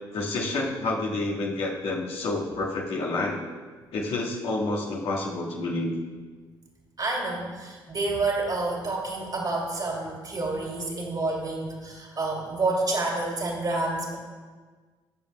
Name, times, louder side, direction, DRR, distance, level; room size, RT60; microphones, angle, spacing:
voice 1, 0.1-3.4 3.9-5.9, left 2 dB, 55° left, -4 dB, 1.7 m, -29 dB
voice 2, 7.0-14.2, right 2 dB, 35° right, -1 dB, 2.7 m, -29 dB
18.5 x 7.2 x 2.3 m, 1.4 s
figure-of-eight pair, 45°, 12 cm